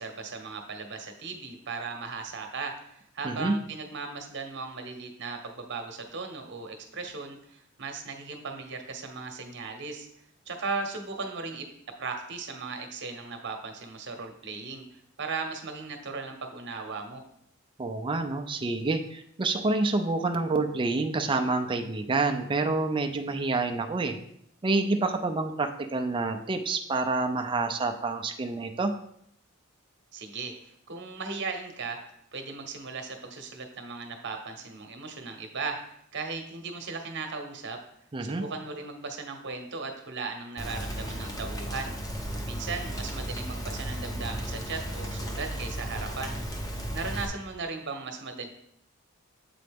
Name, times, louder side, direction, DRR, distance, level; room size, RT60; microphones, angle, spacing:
voice 1, 0.0-10.1 10.5-11.7 12.0-17.2 30.1-37.8 38.2-41.9 42.2-46.4 46.9-48.5, right 4 dB, 55° right, 5 dB, 1.0 m, -37 dB
voice 2, 17.8-24.2 24.6-28.9 38.1-38.4, right 3 dB, 25° right, 5 dB, 0.4 m, -28 dB
Rain, 40.6-47.3, equal, 20° left, 0.7 m, -34 dB
7.6 x 4.0 x 3.5 m, 0.72 s
head